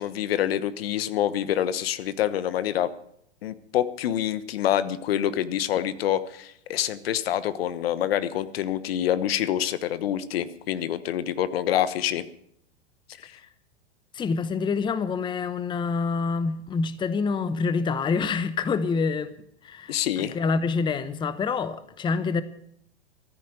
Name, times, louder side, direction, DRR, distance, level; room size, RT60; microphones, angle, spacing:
voice 1, 0.0-2.9 3.4-12.2 13.2-13.3 19.9-20.4, left 11 dB, 65° left, 1.1 m, -26 dB
voice 2, 14.1-19.3 19.6-22.4, left 4 dB, 15° left, 0.8 m, -27 dB
14.0 x 9.4 x 8.9 m
hypercardioid pair, 110°, 32 cm